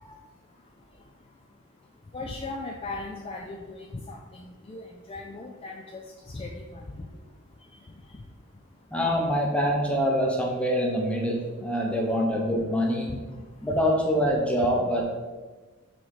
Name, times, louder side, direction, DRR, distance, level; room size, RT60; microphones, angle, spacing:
voice 1, 2.1-6.0 6.3-6.8 13.1-13.2 13.7-13.8, left 2 dB, 25° left, 1 dB, 0.4 m, -38 dB
voice 2, 8.9-13.1 13.6-15.0, equal, 5° left, -1 dB, 0.9 m, -25 dB
6.2 x 3.3 x 4.8 m, 1.3 s
head